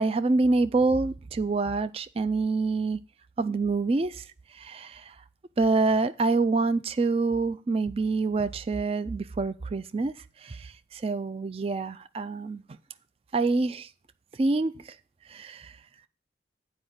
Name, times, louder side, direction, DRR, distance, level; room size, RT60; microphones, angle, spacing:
voice 1, 0.0-3.0 3.4-4.1 4.6-4.9 5.6-10.1 11.0-12.6 13.3-13.9 14.4-14.7 15.3-15.6, right 3 dB, 30° right, 0.3 m, -26 dB
7.8 x 4.9 x 7.1 m
head